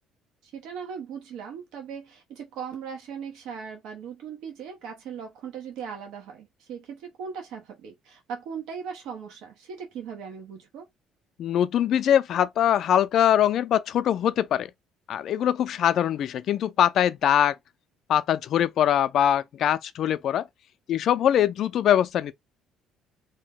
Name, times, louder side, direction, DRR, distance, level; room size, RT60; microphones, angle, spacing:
voice 1, 0.4-10.9, right 6 dB, 75° right, 1.0 m, -38 dB
voice 2, 11.4-14.7 15.1-17.6 18.1-20.5 20.9-22.3, left 10 dB, 60° left, 0.4 m, -22 dB
2.8 x 2.1 x 3.6 m
cardioid pair, 110°, 0 cm